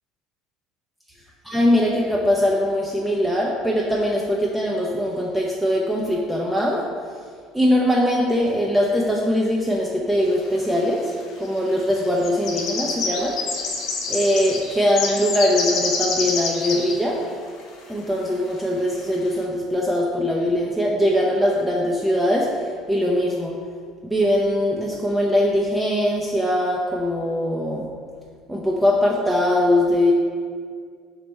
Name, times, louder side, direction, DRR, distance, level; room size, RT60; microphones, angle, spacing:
voice 1, 1.4-6.8 7.5-11.1 11.4-13.4 14.1-17.2 17.9-23.6 24.0-27.9 28.5-30.1, left 1 dB, 10° right, -3 dB, 0.5 m, -21 dB
sound 1, 10.5-10.6 11.5-11.7 12.0-17.0 17.2-17.3 17.7-17.8 18.6-18.7 19.2-19.4, left 4 dB, 60° left, 0.6 m, -27 dB
3.3 x 2.9 x 4.4 m, 2.1 s
hypercardioid pair, 65°, 0 cm